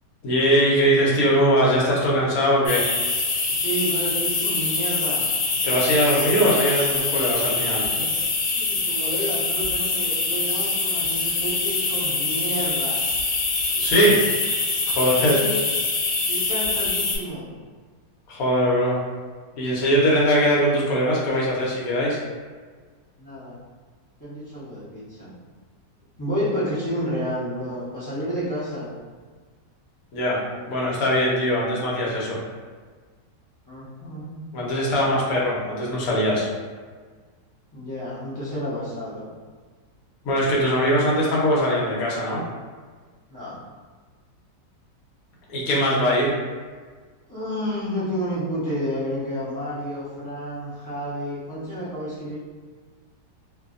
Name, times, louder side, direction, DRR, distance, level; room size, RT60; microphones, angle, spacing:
voice 1, 0.2-2.8 5.6-7.9 13.7-14.2 14.9-15.4 18.3-19.0 19.6-22.2 30.1-30.4 30.7-32.4 34.5-36.5 40.2-42.4 45.5-46.3, equal, 60° left, -5 dB, 1.0 m, -21 dB
sound 1, 2.7-17.2, left 3 dB, 80° left, 1.3 m, -24 dB
voice 2, 3.5-5.2 7.9-8.0 8.4-13.0 15.2-15.6 16.3-17.5 19.9-20.1 23.2-23.6 24.2-25.3 26.2-28.9 33.7-34.5 37.7-39.3 43.3-43.6 47.3-52.3, equal, 25° left, -13 dB, 0.4 m, -30 dB
2.7 x 2.6 x 2.4 m, 1.5 s
omnidirectional pair, 1.9 m